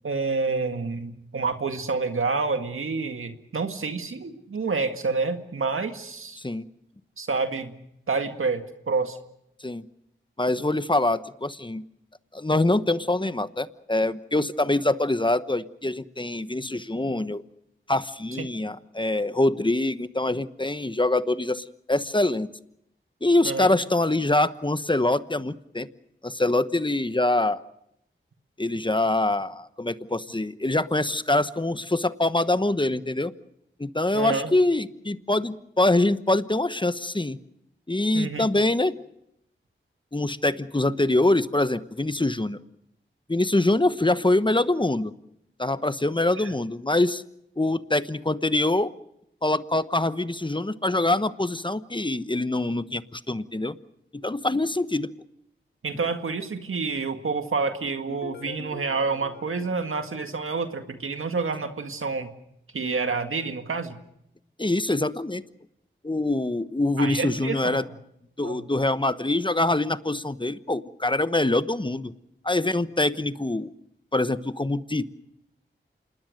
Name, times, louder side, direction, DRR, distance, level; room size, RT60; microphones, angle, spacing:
voice 1, 0.0-6.4 7.2-7.8 8.1-9.2 23.4-23.7 34.1-34.5 38.1-38.5 46.3-46.5 55.8-62.3 62.7-64.0 67.0-67.8 68.4-68.7, right 4 dB, 85° right, 7 dB, 1.9 m, -28 dB
voice 2, 10.4-11.8 12.3-17.4 17.9-22.5 23.2-25.9 26.2-27.6 28.6-33.3 33.8-37.4 37.9-39.0 40.1-42.6 43.3-45.1 45.6-47.2 47.6-48.9 49.4-53.8 54.1-55.1 64.6-65.4 66.0-67.9 68.4-72.1 72.4-73.7 74.1-75.0, left 2 dB, 25° left, 13 dB, 1.1 m, -24 dB
sound 1, 58.1-61.0, left 4 dB, 60° left, 2.4 m, -44 dB
27.5 x 20.0 x 6.6 m, 0.77 s
cardioid pair, 40°, 21 cm